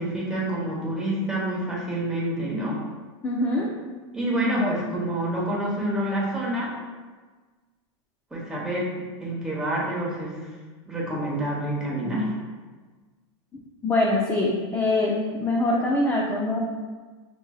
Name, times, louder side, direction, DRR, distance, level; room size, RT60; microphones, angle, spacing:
voice 1, 0.0-2.8 4.1-6.7 8.3-8.9 9.2-10.4 10.9-12.3, right 1 dB, 5° right, -6 dB, 1.0 m, -27 dB
voice 2, 3.2-3.8 4.4-4.7 13.8-16.6, left 2 dB, 15° left, -4 dB, 0.4 m, -24 dB
6.0 x 2.6 x 2.3 m, 1.4 s
supercardioid pair, 135°, 16 cm